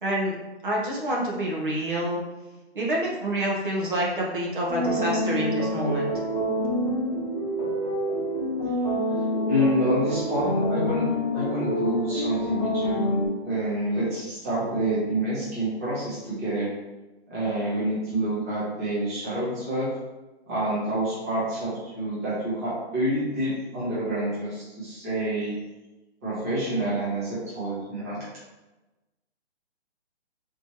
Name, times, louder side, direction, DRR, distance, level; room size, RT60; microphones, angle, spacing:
voice 1, 0.0-0.3 0.6-2.2 2.7-6.1, right 1 dB, 50° right, -3 dB, 1.0 m, -27 dB
sound 1, 4.7-13.3, equal, 35° left, 1.2 m, -27 dB
voice 2, 9.5-11.0 11.3-13.1 13.4-16.7 17.3-19.9 20.5-25.5 26.2-28.2, right 1 dB, 15° right, -11 dB, 0.9 m, -27 dB
4.2 x 3.0 x 2.9 m, 1.1 s
hypercardioid pair, 175°, 34 cm